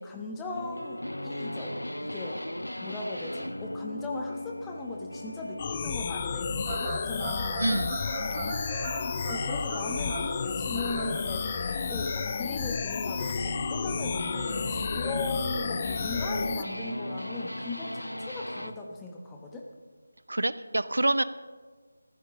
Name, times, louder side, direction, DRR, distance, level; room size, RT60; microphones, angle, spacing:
voice 1, 0.0-1.8 2.0-2.4 2.8-7.7 9.3-11.5 11.9-19.7, left 2 dB, 10° left, 0 dB, 1.1 m, -38 dB
sound 1, 0.5-18.8, left 1 dB, 90° left, 0.9 m, -38 dB
sound 2, 5.6-16.6, left 6 dB, 25° left, 0.4 m, -32 dB
Fowl / Bird vocalization bird call bird song, 6.6-13.4, right 3 dB, 20° right, 1.2 m, -39 dB
voice 2, 7.6-8.0 20.3-21.2, right 2 dB, 70° right, 15 dB, 0.6 m, -26 dB
17.5 x 15.0 x 3.7 m, 1.5 s
figure-of-eight pair, 160°, 0 cm